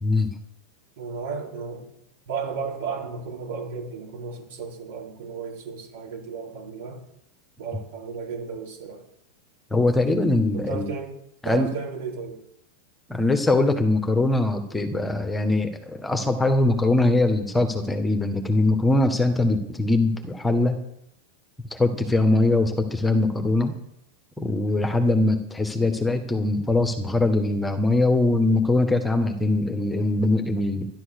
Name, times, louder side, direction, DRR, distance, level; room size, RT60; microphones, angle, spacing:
voice 1, 0.0-0.3 9.7-10.9 11.4-11.7 13.1-20.8 21.7-23.7 24.4-30.9, left 2 dB, 10° left, 6 dB, 1.6 m, -22 dB
voice 2, 1.0-1.9 2.3-7.0 7.6-9.0 10.5-11.1 11.4-12.4, right 5 dB, 70° right, -2 dB, 4.8 m, -34 dB
11.5 x 11.0 x 6.7 m, 0.78 s
hypercardioid pair, 110°, 0 cm